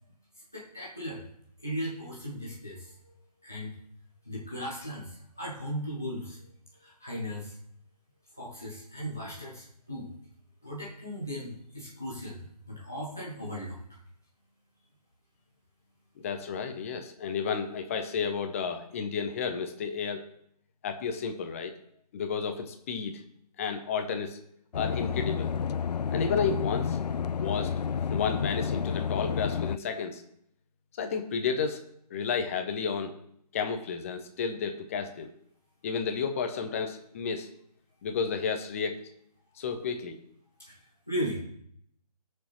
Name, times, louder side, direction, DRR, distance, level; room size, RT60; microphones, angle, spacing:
voice 1, 0.5-1.3 1.6-3.1 3.4-3.8 4.3-6.4 6.8-7.6 8.4-10.1 10.6-13.8 40.7-40.8 41.1-41.4, equal, 5° left, -6 dB, 0.3 m, -37 dB
voice 2, 16.2-20.2 20.8-21.7 22.1-23.2 23.6-24.4 24.7-25.5 26.1-27.0 27.3-27.7 28.1-30.2 30.9-31.8 32.1-33.1 33.5-35.3 35.8-37.5 38.0-39.0 39.6-40.2, left 6 dB, 20° left, 7 dB, 0.8 m, -32 dB
sound 1, 24.7-29.8, left 7 dB, 80° left, 0.4 m, -30 dB
18.0 x 6.5 x 3.1 m, 0.70 s
figure-of-eight pair, 155°, 20 cm